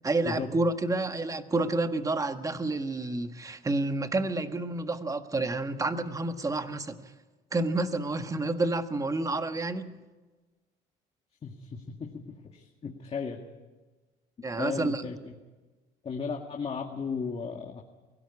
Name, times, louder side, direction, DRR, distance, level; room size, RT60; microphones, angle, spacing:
voice 1, 0.0-7.0 7.5-10.0 14.4-15.1, right 2 dB, 20° right, 8 dB, 1.5 m, -29 dB
voice 2, 11.4-12.2 12.5-13.4 14.6-15.3 16.0-17.8, left 5 dB, 35° left, 2 dB, 2.0 m, -35 dB
23.5 x 16.5 x 9.7 m, 1.3 s
cardioid pair, 110°, 17 cm